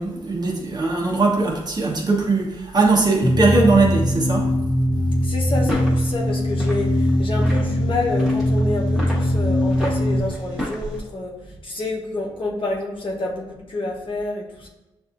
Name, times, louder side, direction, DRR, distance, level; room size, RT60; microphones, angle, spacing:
voice 1, 0.0-4.5, right 3 dB, 40° right, -2 dB, 1.1 m, -20 dB
sound 1, 3.2-10.2, left 1 dB, 30° left, 0.7 m, -21 dB
voice 2, 5.2-14.7, left 2 dB, 50° left, -2 dB, 1.1 m, -28 dB
sound 2, 5.5-11.0, equal, 5° right, 1.4 m, -33 dB
6.6 x 2.6 x 2.6 m, 1.0 s
cardioid pair, 55°, 11 cm